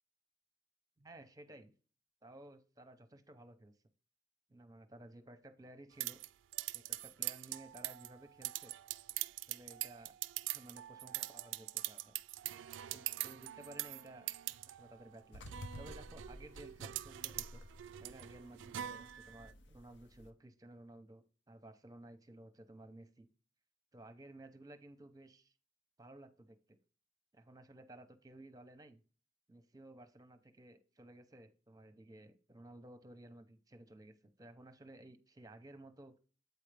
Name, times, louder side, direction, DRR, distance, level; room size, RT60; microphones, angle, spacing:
voice 1, 1.0-1.7 2.2-3.7 4.5-6.2 6.7-8.7 9.5-10.1 10.5-12.1 12.9-14.3 14.7-15.4 15.8-17.6 18.0-23.3 23.9-25.5 26.0-26.8 27.3-29.0 29.5-36.1, right 1 dB, 20° right, 10 dB, 0.7 m, -56 dB
sound 1, 6.0-19.5, right 15 dB, 85° right, 0.3 m, -43 dB
sound 2, 15.3-20.3, left 1 dB, 70° left, 0.8 m, -53 dB
8.2 x 4.8 x 3.3 m, 0.37 s
head